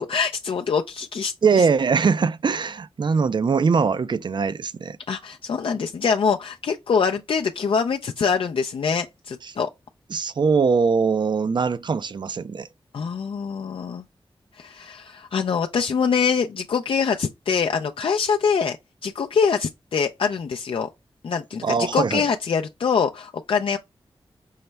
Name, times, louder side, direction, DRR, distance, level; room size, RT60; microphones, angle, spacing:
voice 1, 0.0-1.6 5.1-9.7 12.9-14.0 14.6-18.8 19.0-20.9 21.2-23.8, left 6 dB, 65° left, 0.3 m, -24 dB
voice 2, 1.4-5.0 9.4-9.5 10.1-12.7 21.6-22.2, right 5 dB, 50° right, 0.4 m, -21 dB
5.5 x 2.0 x 3.3 m
cardioid pair, 60°, 10 cm